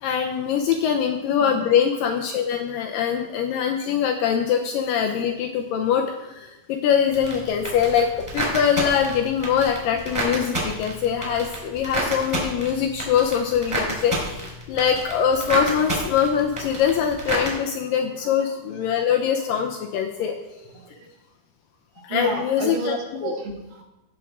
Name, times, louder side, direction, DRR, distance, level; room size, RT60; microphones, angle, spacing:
voice 1, 0.0-20.4 22.0-23.0 23.2-23.3, left 8 dB, 80° left, 3 dB, 2.0 m, -23 dB
sound 1, 7.1-17.5, right 1 dB, 10° right, 3.3 m, -30 dB
voice 2, 20.7-21.1 22.1-23.8, right 3 dB, 80° right, 2 dB, 3.4 m, -31 dB
17.0 x 7.1 x 3.6 m, 0.97 s
omnidirectional pair, 4.6 m